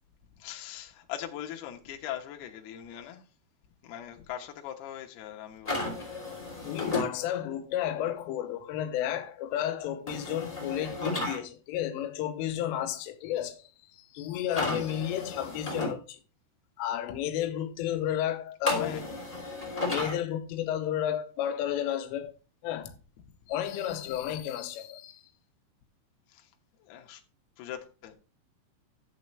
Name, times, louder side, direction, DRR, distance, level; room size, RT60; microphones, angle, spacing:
voice 1, 0.4-3.2 3.8-5.9 18.8-19.2 26.3-26.5 26.8-27.2 27.6-28.1, left 11 dB, 70° left, 2.9 m, -41 dB
sound 1, 5.6-7.1 10.1-11.4 14.5-15.9 18.7-20.2, left 2 dB, 10° left, 2.4 m, -33 dB
voice 2, 6.6-16.2 16.8-19.1 19.9-22.3 22.6-23.0 23.5-25.2, left 11 dB, 90° left, 3.5 m, -32 dB
12.0 x 7.8 x 3.2 m
omnidirectional pair, 5.5 m